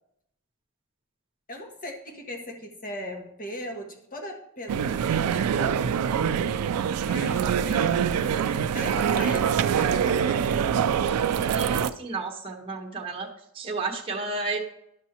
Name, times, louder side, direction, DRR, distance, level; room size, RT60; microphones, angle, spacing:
voice 1, 1.5-5.9 7.1-10.8, left 1 dB, 40° left, 1 dB, 1.4 m, -39 dB
sound 1, 4.7-11.9, right 8 dB, 85° right, 0.4 m, -24 dB
voice 2, 11.5-13.3 13.5-14.6, right 3 dB, 25° right, -1 dB, 1.0 m, -32 dB
11.0 x 6.2 x 2.9 m, 0.74 s
head